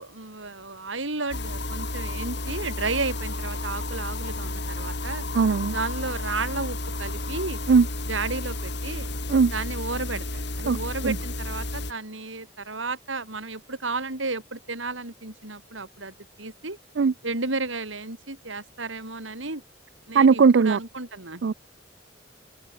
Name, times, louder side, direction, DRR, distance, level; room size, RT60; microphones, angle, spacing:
voice 1, 0.0-5.2 5.7-7.6 8.1-9.1 9.5-16.8 17.2-19.6 20.1-21.4, right 3 dB, 80° right, 4.9 m, -33 dB
sound 1, 1.3-11.9, left 2 dB, 60° left, 5.5 m, -32 dB
voice 2, 5.3-5.8 7.7-7.9 9.3-9.5 10.7-11.2 17.0-17.1 20.1-20.8 21.4-21.5, right 5 dB, 65° right, 0.4 m, -19 dB
head